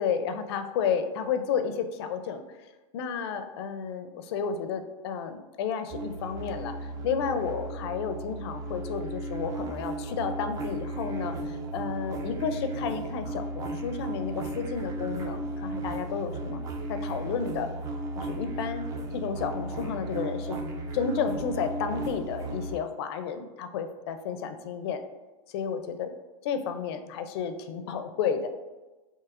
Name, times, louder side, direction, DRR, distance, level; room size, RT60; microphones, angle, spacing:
voice 1, 0.0-2.4 2.9-16.6 16.9-17.7 18.2-18.8 19.1-20.6 20.9-25.0 25.5-26.1 26.4-28.5, left 6 dB, 50° left, 9 dB, 0.4 m, -32 dB
sound 1, 5.9-22.8, right 1 dB, 20° right, 0.4 m, -35 dB
5.8 x 2.7 x 2.4 m, 1.2 s
hypercardioid pair, 145°, 17 cm